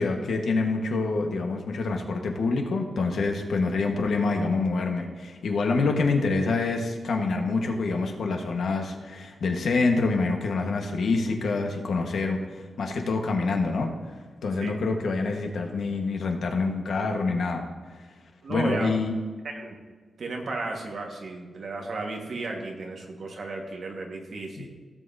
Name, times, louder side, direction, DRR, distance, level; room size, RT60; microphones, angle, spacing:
voice 1, 0.0-13.9 14.4-17.6 18.5-19.1 24.6-24.7, left 3 dB, 70° left, 2 dB, 1.4 m, -26 dB
voice 2, 18.4-18.9 19.4-19.7 20.2-24.7, right 3 dB, 50° right, 1 dB, 1.6 m, -34 dB
16.5 x 7.7 x 2.8 m, 1.5 s
wide cardioid pair, 160°, 0 cm